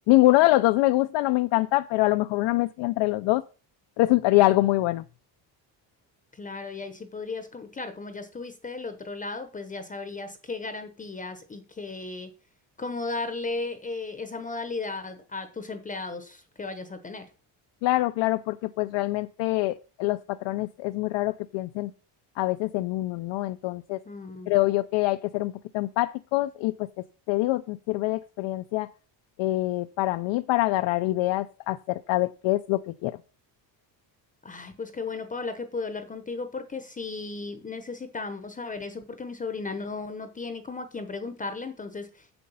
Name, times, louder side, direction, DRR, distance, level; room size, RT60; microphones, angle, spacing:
voice 1, 0.1-3.4 4.0-5.0 17.8-21.9 22.4-24.0 24.5-26.9 27.3-28.9 29.4-33.2, left 18 dB, 80° left, 0.6 m, -24 dB
voice 2, 6.3-12.3 12.8-17.3 24.1-24.5 34.4-42.3, left 3 dB, 20° left, 0.8 m, -35 dB
7.5 x 7.0 x 5.5 m
cardioid pair, 160°, 44 cm